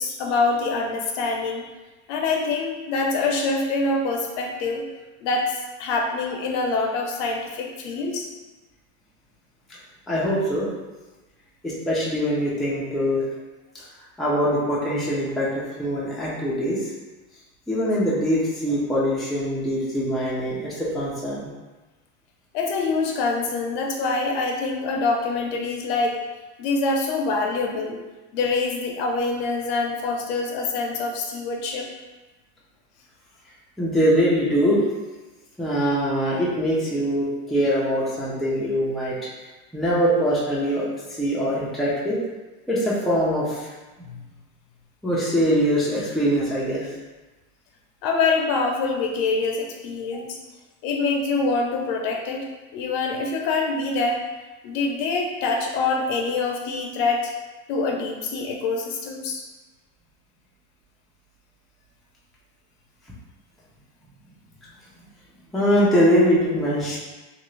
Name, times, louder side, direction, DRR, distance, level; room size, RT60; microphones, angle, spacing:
voice 1, 0.0-1.6 2.1-4.8 5.2-8.3 22.5-26.2 26.6-28.0 28.3-31.9 44.1-44.2 48.0-50.4 50.8-52.5 52.7-54.2 54.6-57.3 57.7-59.4, left 3 dB, 60° left, 1 dB, 0.7 m, -25 dB
voice 2, 10.1-10.7 11.6-13.2 14.2-16.9 17.7-21.5 33.8-34.8 35.6-39.2 39.7-40.9 41.2-42.2 42.7-43.7 45.0-46.9 65.5-67.0, equal, ahead, -8 dB, 0.5 m, -23 dB
2.8 x 2.6 x 3.1 m, 1.2 s
supercardioid pair, 135°, 40 cm